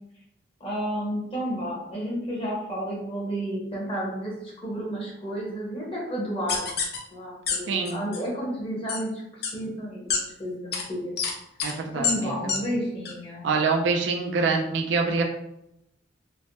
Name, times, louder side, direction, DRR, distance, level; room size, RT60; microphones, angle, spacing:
voice 1, 0.6-6.7 7.1-11.1 11.9-13.5, equal, 30° left, -4 dB, 0.9 m, -31 dB
sound 1, 6.5-7.0 7.5-7.6 7.9-8.2 8.9-9.0 9.4-9.5 10.1-10.2 10.7-10.8 11.2-11.3 11.6-11.7 12.0-12.1 12.5-12.6 13.1-13.2, left 6 dB, 60° left, 0.5 m, -26 dB
voice 2, 7.7-8.0 11.6-12.5 13.4-15.2, right 4 dB, 85° right, 2 dB, 0.4 m, -25 dB
3.2 x 2.1 x 2.6 m, 0.81 s
head